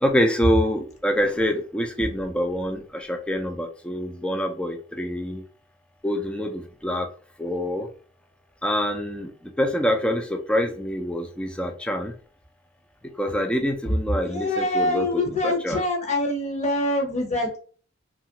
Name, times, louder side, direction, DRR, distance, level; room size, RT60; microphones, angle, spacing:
voice 1, 0.0-5.4 6.0-7.1 7.4-7.9 8.6-9.3 9.6-12.1 13.0-15.8, equal, 5° left, 4 dB, 0.4 m, -26 dB
voice 2, 14.1-17.6, left 1 dB, 35° left, 2 dB, 0.8 m, -25 dB
3.0 x 2.4 x 2.7 m, 0.41 s
head